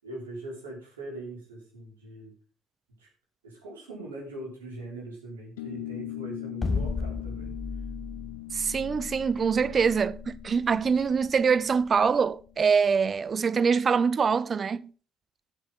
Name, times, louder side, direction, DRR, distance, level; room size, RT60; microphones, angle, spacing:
voice 1, 0.0-2.3 3.0-3.1 3.4-7.5, right 2 dB, 85° right, 5.4 m, -41 dB
sound 1, 5.6-12.5, left 17 dB, 80° left, 0.4 m, -41 dB
sound 2, 6.6-12.8, left 4 dB, 25° left, 1.2 m, -35 dB
voice 2, 8.5-14.9, right 6 dB, 40° right, 0.7 m, -24 dB
15.5 x 7.5 x 3.9 m
hypercardioid pair, 50°, 0 cm